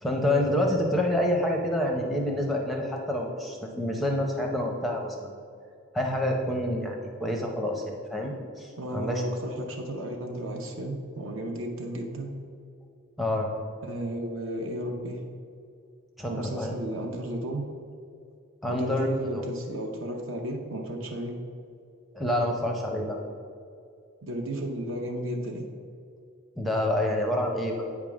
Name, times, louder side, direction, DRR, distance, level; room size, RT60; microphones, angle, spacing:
voice 1, 0.0-5.4 5.9-7.8 8.1-9.2 13.2-13.5 16.2-16.7 18.6-19.4 22.1-23.2 26.6-27.9, left 1 dB, ahead, 0 dB, 0.6 m, -27 dB
voice 2, 8.8-12.3 13.8-15.2 16.3-17.6 18.7-21.4 24.2-25.7, right 1 dB, 60° right, 2 dB, 0.7 m, -33 dB
8.6 x 3.6 x 6.1 m, 2.4 s
head